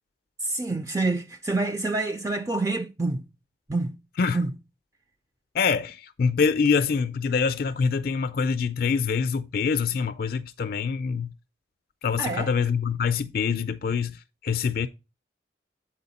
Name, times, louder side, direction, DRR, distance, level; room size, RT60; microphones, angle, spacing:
voice 1, 0.4-3.3 3.7-4.0 4.3-4.5 12.2-12.5, right 2 dB, 15° right, 0.4 m, -27 dB
voice 2, 5.5-11.3 12.0-14.9, left 5 dB, 50° left, 0.4 m, -25 dB
7.7 x 4.3 x 4.0 m
head